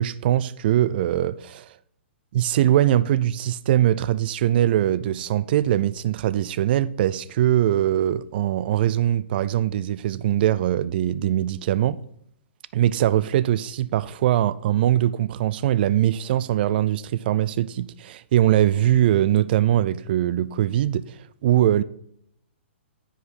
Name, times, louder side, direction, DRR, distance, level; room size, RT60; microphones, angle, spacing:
voice 1, 0.0-1.7 2.3-12.0 12.7-21.8, right 12 dB, 55° right, 0.3 m, -22 dB
9.6 x 5.1 x 4.0 m
hypercardioid pair, 135°, 6 cm